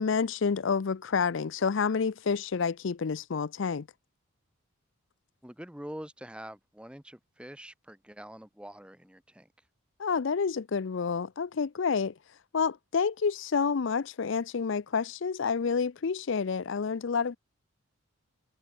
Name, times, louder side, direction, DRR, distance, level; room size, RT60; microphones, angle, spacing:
voice 1, 0.0-3.9 10.0-12.1 12.5-17.4, left 5 dB, 60° left, 0.5 m, -29 dB
voice 2, 5.4-9.5, equal, 5° right, 0.9 m, -45 dB
head